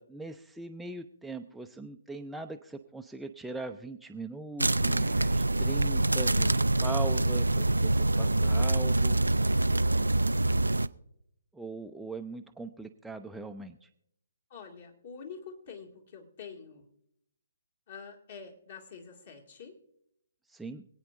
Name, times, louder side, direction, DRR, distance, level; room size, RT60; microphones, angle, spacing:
voice 1, 0.0-9.2 11.5-13.9 20.5-20.9, right 3 dB, 5° right, 4 dB, 0.4 m, -41 dB
sound 1, 4.6-10.9, right 2 dB, 80° right, 0.3 m, -25 dB
voice 2, 14.5-16.9 17.9-19.8, left 6 dB, 45° left, 1 dB, 2.1 m, -46 dB
25.0 x 8.9 x 2.5 m, 0.74 s
figure-of-eight pair, 135°, 0 cm